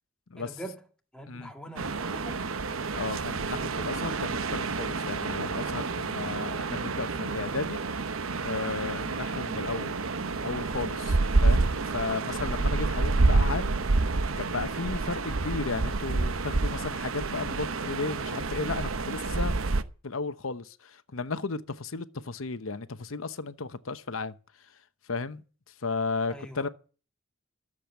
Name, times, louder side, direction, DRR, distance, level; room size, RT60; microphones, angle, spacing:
voice 1, 0.4-0.8 1.1-2.4 26.3-26.7, right 1 dB, 5° left, 1.8 m, -43 dB
sound 1, 1.8-19.8, right 3 dB, 85° right, 0.9 m, -28 dB
voice 2, 2.9-8.0 8.4-19.6 20.0-26.7, left 4 dB, 80° left, 1.0 m, -35 dB
13.5 x 7.7 x 9.4 m
head